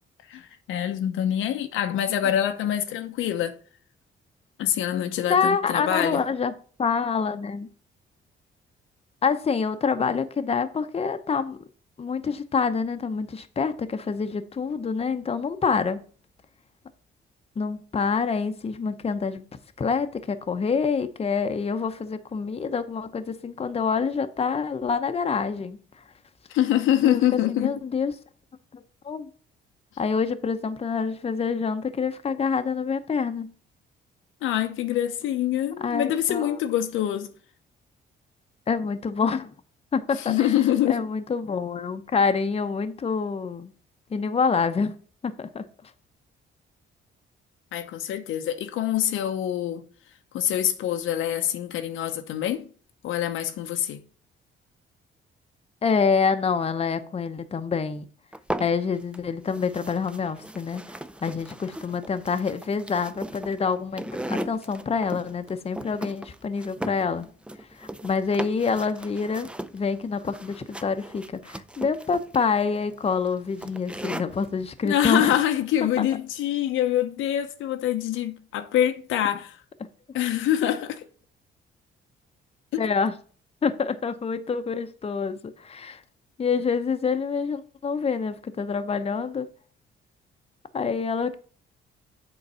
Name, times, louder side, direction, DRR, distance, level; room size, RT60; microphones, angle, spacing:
voice 1, 0.3-3.6 4.6-6.2 26.5-27.7 34.4-37.3 40.2-41.1 47.7-49.9 50.3-52.7 53.0-54.0 74.8-79.6 80.1-81.1 82.7-82.8, left 11 dB, 85° left, 0.8 m, -25 dB
voice 2, 5.3-6.5 6.8-7.7 9.2-11.6 12.0-16.0 17.6-19.4 19.8-25.8 27.0-27.2 27.5-28.1 28.7-29.3 30.0-33.5 35.8-36.6 38.7-39.5 39.9-40.5 40.9-43.7 44.1-44.9 45.2-45.6 55.8-58.1 58.6-60.8 61.2-67.3 67.8-69.5 69.7-75.3 82.8-83.1 83.6-86.0 86.4-89.5 90.7-91.4, left 5 dB, 30° left, 0.7 m, -26 dB
sound 1, 58.3-59.2 59.5-74.5, right 1 dB, 5° right, 0.4 m, -37 dB
8.0 x 3.9 x 5.5 m
cardioid pair, 90°, 20 cm